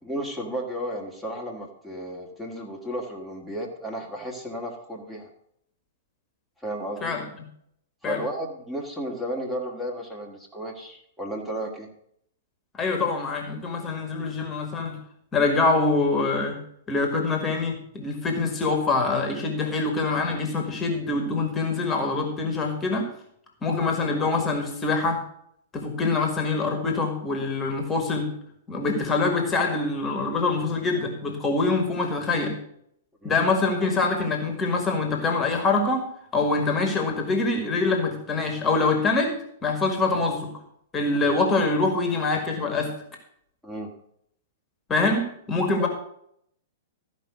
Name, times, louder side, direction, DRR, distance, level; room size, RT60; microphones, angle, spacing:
voice 1, 0.0-5.3 6.6-7.2 8.0-11.9 33.2-33.4 41.1-41.2 43.6-43.9 45.8-45.9, right 1 dB, 5° right, -2 dB, 2.0 m, -33 dB
voice 2, 12.7-15.0 15.3-16.6 16.9-23.1 23.6-25.2 25.7-28.3 28.7-32.6 33.2-36.1 36.3-39.3 39.6-40.5 40.9-42.9 44.9-45.9, left 3 dB, 20° left, 3 dB, 1.9 m, -24 dB
13.5 x 5.3 x 6.2 m, 0.71 s
figure-of-eight pair, 110°, 0 cm